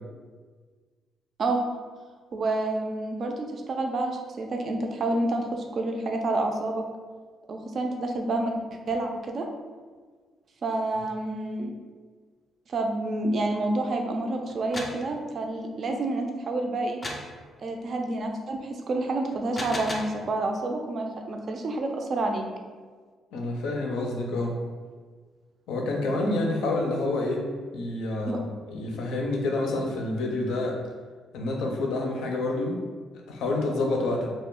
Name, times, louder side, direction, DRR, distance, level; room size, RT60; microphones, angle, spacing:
voice 1, 2.3-6.8 7.5-9.5 10.6-11.7 12.7-17.0 17.6-22.4 28.3-28.4, right 2 dB, 50° right, 3 dB, 0.4 m, -29 dB
sound 1, 14.5-15.0 17.0-17.3 19.3-20.2, left 1 dB, 20° left, 0.4 m, -35 dB
voice 2, 23.3-24.5 25.7-27.4 27.7-28.4 28.7-30.8 31.3-32.8 33.3-34.3, left 2 dB, 85° left, 1 dB, 0.5 m, -28 dB
2.3 x 2.0 x 3.6 m, 1.5 s
cardioid pair, 90°, 0 cm